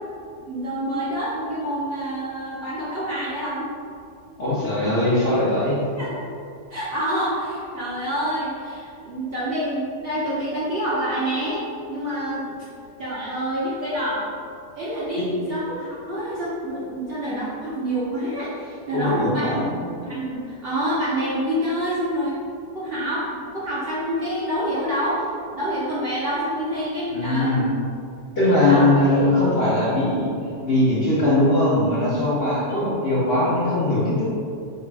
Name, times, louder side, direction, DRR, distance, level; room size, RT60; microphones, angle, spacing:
voice 1, 0.4-3.7 6.0-6.3 6.7-12.6 13.0-14.3 14.7-19.6 20.0-22.4 22.7-25.2 25.5-27.6 28.5-28.9 32.7-32.9, equal, 50° right, -9 dB, 0.8 m, -27 dB
voice 2, 4.4-5.8 18.9-19.7 27.1-27.7 28.4-30.3 30.6-34.3, left 1 dB, 50° left, -8 dB, 0.9 m, -20 dB
3.3 x 2.9 x 4.6 m, 2.4 s
omnidirectional pair, 1.7 m